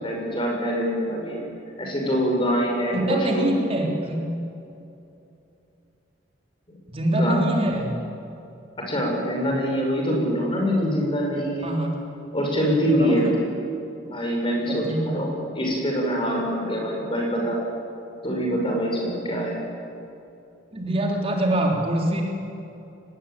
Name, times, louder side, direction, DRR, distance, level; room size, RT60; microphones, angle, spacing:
voice 1, 0.0-1.4 1.8-3.6 7.1-7.4 8.8-11.7 12.3-13.3 14.1-17.6 18.2-19.6, equal, 25° left, 0 dB, 6.5 m, -24 dB
voice 2, 2.9-4.3 6.9-8.0 11.6-11.9 13.0-13.3 14.7-15.2 20.7-22.2, right 1 dB, 30° right, 0 dB, 3.6 m, -24 dB
24.0 x 20.5 x 9.2 m, 2.7 s
head